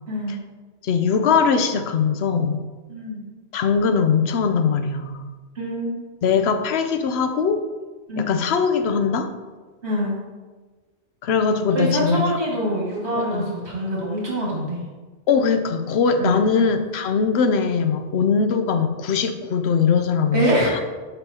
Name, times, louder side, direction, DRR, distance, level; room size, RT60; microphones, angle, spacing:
voice 1, 0.1-0.4 2.9-3.2 5.6-6.0 8.1-8.3 9.8-10.2 11.7-14.8 16.2-16.4 20.3-20.7, equal, 80° right, -4 dB, 2.1 m, -24 dB
voice 2, 0.8-2.6 3.5-5.3 6.2-7.6 8.2-9.3 11.2-12.2 13.2-13.5 15.3-20.8, left 5 dB, 75° left, 8 dB, 0.9 m, -21 dB
8.2 x 5.5 x 2.8 m, 1.3 s
omnidirectional pair, 1.1 m